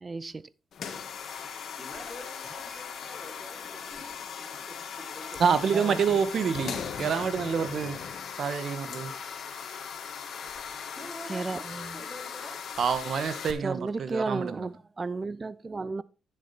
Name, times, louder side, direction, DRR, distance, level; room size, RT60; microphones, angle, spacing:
voice 1, 0.0-0.5 5.7-6.0 11.3-12.0 13.6-16.0, right 3 dB, 25° right, 0.5 m, -33 dB
sound 1, 0.7-13.5, left 7 dB, 60° left, 1.7 m, -38 dB
voice 2, 1.8-6.1 10.9-11.5 11.9-12.6, left 1 dB, ahead, 6.1 m, -46 dB
voice 3, 5.4-8.0 8.4-9.1 12.8-14.7, right 6 dB, 55° right, 1.3 m, -27 dB
10.5 x 7.4 x 4.2 m
cardioid pair, 90°, 0 cm